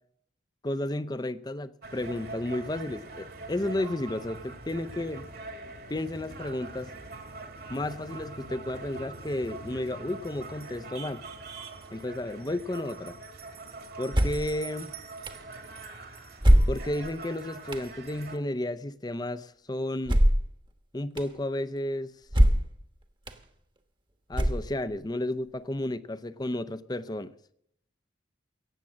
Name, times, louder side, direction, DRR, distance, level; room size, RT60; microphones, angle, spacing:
voice 1, 0.6-5.3 5.9-6.9 7.7-11.2 11.9-13.2 14.0-14.9 16.7-20.2 20.9-22.1 24.3-27.3, left 1 dB, 20° left, 0.5 m, -32 dB
sound 1, 1.8-18.4, right 3 dB, 50° right, 1.7 m, -43 dB
sound 2, 14.1-14.5 15.3-15.4 16.4-17.1 17.7-17.9 20.0-20.5 21.2-21.3 22.3-22.8 23.3-23.4 24.3-24.9, equal, 25° right, 1.1 m, -21 dB
17.0 x 7.4 x 7.4 m
head